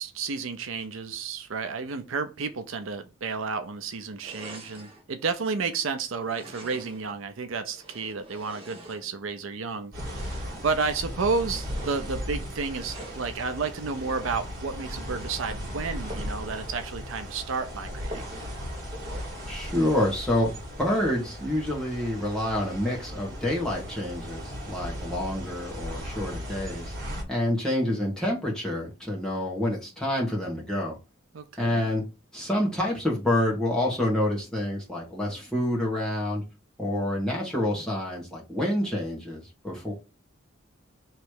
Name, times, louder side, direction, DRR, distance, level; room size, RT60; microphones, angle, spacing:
voice 1, 0.0-18.2 31.3-31.9, right 4 dB, 75° right, 0.5 m, -31 dB
sound 1, 4.2-5.0 6.2-7.1 7.7-9.4 9.9-10.6 11.2-12.1 12.7-13.3 13.9-14.5 14.9-15.4 16.1-16.5 16.8-16.9 17.3-17.4 18.1-18.6 18.9-19.4, right 1 dB, 25° right, 1.0 m, -45 dB
sound 2, 9.9-27.2, equal, 45° right, 1.8 m, -37 dB
voice 2, 19.5-20.5 20.8-26.9 27.3-31.0 31.6-32.0 32.3-36.4 36.8-39.9, left 1 dB, 5° left, 1.3 m, -28 dB
3.2 x 3.0 x 4.7 m
head